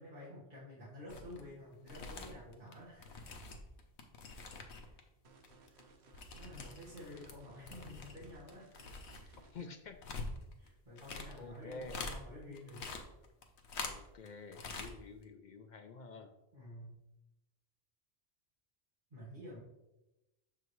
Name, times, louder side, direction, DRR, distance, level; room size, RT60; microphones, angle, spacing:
voice 1, 0.0-3.3 4.8-4.9 5.5-5.9 6.1-8.7 9.1-9.7 10.6-12.9 16.5-16.9 19.1-19.6, left 1 dB, 50° right, -9 dB, 1.7 m, -51 dB
sound 1, 1.1-1.4 1.7-5.0 5.3-7.4 7.6-12.2 12.5-14.3 14.5-14.9 15.2-15.3, left 3 dB, 80° left, 1.1 m, -45 dB
sound 2, 5.2-9.6, right 3 dB, 80° right, 1.1 m, -63 dB
voice 2, 7.5-7.8 9.4-10.0 11.4-12.0 13.8-16.3, left 3 dB, 55° left, 6 dB, 0.5 m, -49 dB
6.9 x 5.7 x 3.1 m, 0.95 s
omnidirectional pair, 1.1 m